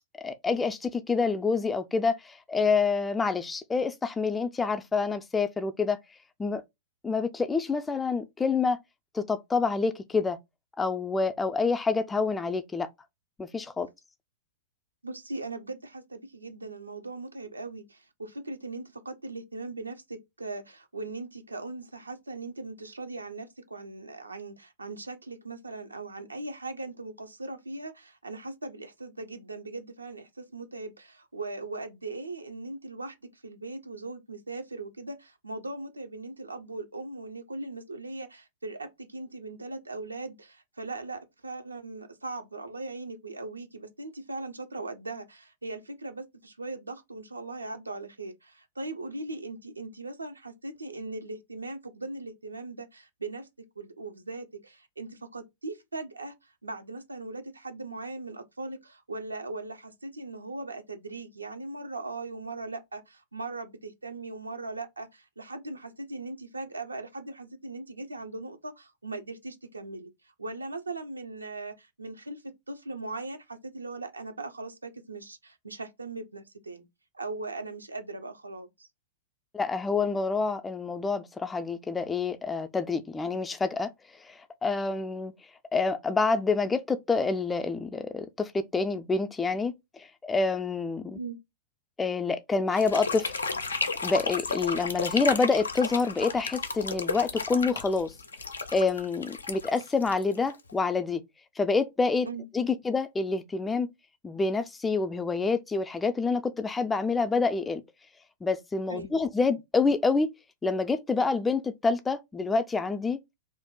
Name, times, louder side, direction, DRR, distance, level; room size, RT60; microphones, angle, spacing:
voice 1, 0.2-6.0 6.4-6.6 7.0-8.8 9.1-10.4 10.8-12.9 13.4-13.9 79.5-83.9 84.2-85.3 85.7-89.7 90.0-91.2 92.0-93.3 94.0-98.1 98.7-101.2 101.6-102.3 102.5-103.9 104.2-107.8 108.4-110.3 110.6-113.2, left 4 dB, 10° left, 0.3 m, -27 dB
voice 2, 15.0-76.8 77.1-78.9 91.1-91.4 102.2-102.5 108.9-109.1, right 2 dB, 85° right, 0.5 m, -39 dB
sound 1, 92.7-100.7, left 4 dB, 75° left, 0.4 m, -33 dB
2.5 x 2.1 x 3.7 m
figure-of-eight pair, 100°, 0 cm